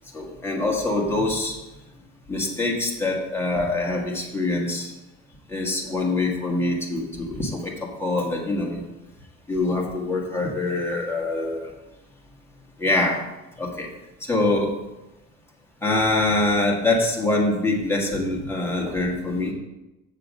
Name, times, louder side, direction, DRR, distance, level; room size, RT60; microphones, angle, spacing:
voice 1, 0.1-1.5 2.3-4.9 5.5-8.8 9.5-11.7 12.8-13.2 13.6-13.9 14.3-14.7 15.8-19.5, left 2 dB, 5° left, -2 dB, 1.6 m, -24 dB
8.2 x 6.9 x 5.1 m, 1.0 s
cardioid pair, 160°, 34 cm